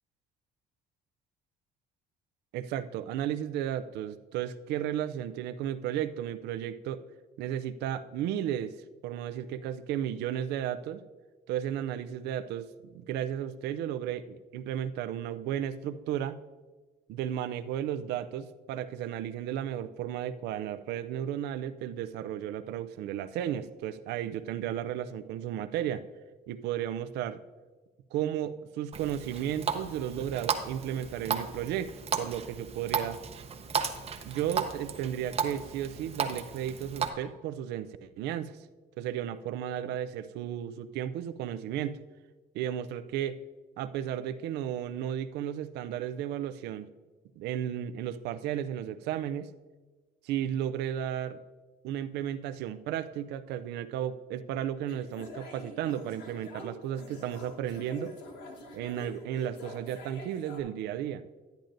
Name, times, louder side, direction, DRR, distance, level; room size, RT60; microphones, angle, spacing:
voice 1, 2.5-7.0 7.4-8.7 9.0-11.0 11.5-16.4 17.1-26.0 26.5-27.4 28.1-31.9 32.2-33.2 34.3-38.6 39.0-42.0 42.5-43.4 43.8-46.9 47.4-49.5 50.2-51.4 51.8-58.2 58.7-61.2, right 10 dB, 80° right, 12 dB, 0.5 m, -34 dB
Water tap faucet, 28.9-37.1, right 6 dB, 35° right, 0.7 m, -35 dB
sound 1, 54.9-60.6, left 2 dB, 85° left, 1.4 m, -46 dB
10.5 x 10.0 x 2.6 m, 1.3 s
cardioid pair, 110°, 17 cm